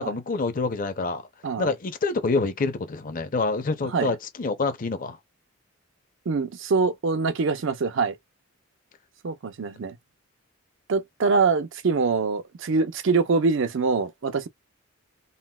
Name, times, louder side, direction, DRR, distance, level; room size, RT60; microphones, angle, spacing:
voice 1, 0.0-1.3 1.6-5.2, left 3 dB, 40° left, 0.6 m, -27 dB
voice 2, 1.4-1.7 3.9-4.1 6.3-8.2 9.2-10.0 10.9-14.5, right 4 dB, 65° right, 0.5 m, -24 dB
4.0 x 2.1 x 2.2 m
head